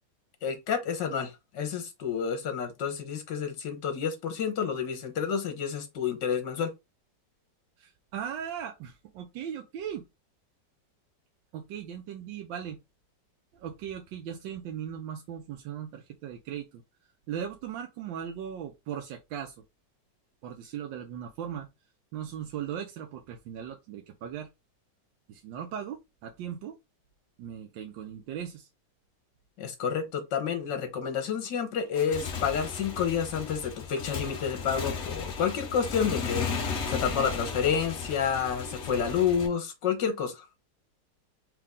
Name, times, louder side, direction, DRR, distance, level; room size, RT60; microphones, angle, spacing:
voice 1, 0.4-6.7 29.6-40.5, left 7 dB, 75° left, 1.7 m, -29 dB
voice 2, 7.8-10.0 11.5-12.8 13.5-16.8 17.3-19.6 20.4-21.7 22.1-24.5 25.3-26.8 27.4-28.7, right 9 dB, 85° right, 1.4 m, -38 dB
Motorcycle / Engine, 31.8-39.5, left 5 dB, 50° left, 0.9 m, -35 dB
4.6 x 2.8 x 3.6 m
omnidirectional pair, 2.0 m